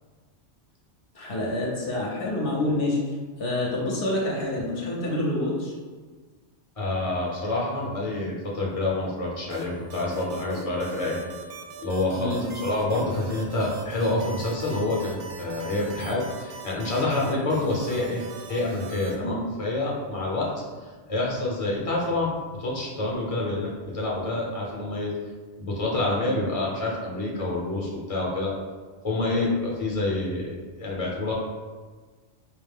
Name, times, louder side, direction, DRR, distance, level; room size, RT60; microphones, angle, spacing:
voice 1, 1.1-3.0 3.4-5.7 12.2-12.4 19.2-19.3 29.3-29.5, left 1 dB, 55° left, -3 dB, 1.0 m, -27 dB
voice 2, 6.8-11.2 11.8-18.2 18.5-20.5 21.1-22.3 22.6-25.1 25.6-28.5 29.0-31.3, left 2 dB, 35° left, -4 dB, 0.9 m, -27 dB
sound 1, 9.5-19.1, right 4 dB, 60° right, 0.6 m, -41 dB
4.7 x 2.1 x 3.5 m, 1.4 s
omnidirectional pair, 1.2 m